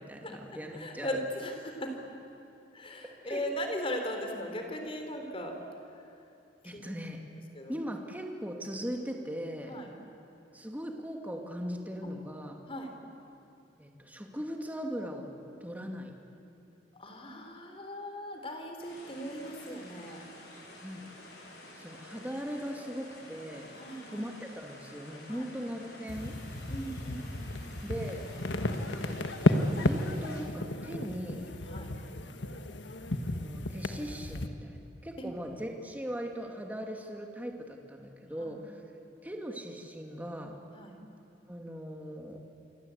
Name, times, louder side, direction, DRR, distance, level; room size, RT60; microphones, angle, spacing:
voice 1, 0.0-1.2 3.0-3.4 6.6-7.2 7.7-9.8 10.5-12.6 13.8-15.3 15.6-16.1 20.8-21.0 21.8-23.7 24.1-26.4 27.8-28.2 28.9-29.2 29.7-31.5 33.2-38.8 39.2-40.6 41.5-42.4, equal, 10° right, 2 dB, 2.5 m, -39 dB
voice 2, 0.7-1.9 2.7-5.6 6.7-6.9 7.5-7.7 9.7-9.9 12.0-12.1 12.7-12.9 16.9-20.3 23.7-24.3 25.3-25.5 26.7-27.6 31.7-31.9 35.2-35.3 38.4-38.6 40.8-41.0, equal, 30° left, 4 dB, 3.7 m, -38 dB
sound 1, 18.8-30.4, left 1 dB, 65° left, 7.4 m, -50 dB
sound 2, 26.1-34.5, left 1 dB, 85° left, 1.5 m, -33 dB
28.0 x 24.0 x 8.4 m, 2.8 s
head